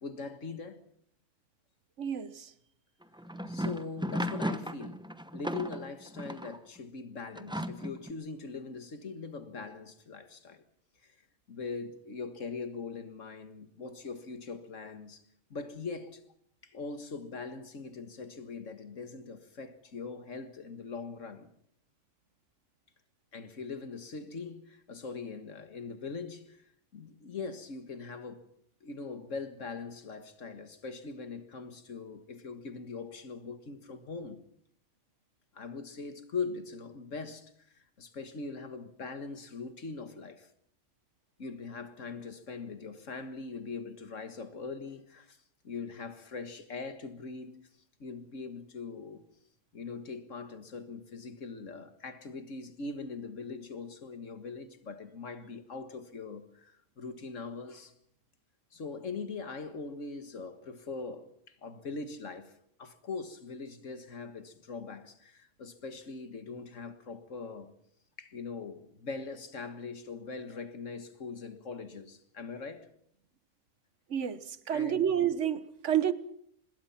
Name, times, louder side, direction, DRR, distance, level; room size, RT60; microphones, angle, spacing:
voice 1, 0.0-0.8 3.5-5.0 5.3-10.6 11.0-11.2 11.5-15.2 15.5-16.2 16.6-21.5 23.3-26.6 26.9-28.5 28.8-34.4 35.5-40.5 41.4-45.4 45.6-47.6 48.0-49.2 49.7-57.9 58.7-67.7 68.2-72.9 74.7-75.1, left 4 dB, 90° left, 2.0 m, -41 dB
voice 2, 2.0-2.5 74.1-76.1, right 9 dB, 75° right, 1.4 m, -29 dB
sound 1, 3.0-6.6 7.4-8.1, equal, 5° right, 0.8 m, -35 dB
25.5 x 21.5 x 5.8 m
omnidirectional pair, 1.3 m